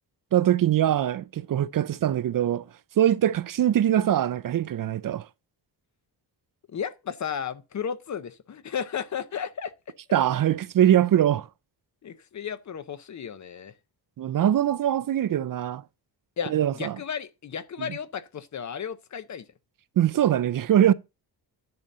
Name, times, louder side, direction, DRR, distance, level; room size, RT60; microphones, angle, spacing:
voice 1, 0.3-2.7 3.0-5.2 10.1-11.5 14.2-15.8 16.5-16.9 20.0-20.9, right 11 dB, 50° right, 0.5 m, -22 dB
voice 2, 6.7-9.7 12.0-13.7 16.4-19.4, left 7 dB, 45° left, 0.6 m, -34 dB
10.5 x 4.1 x 6.6 m
wide cardioid pair, 155°, 42 cm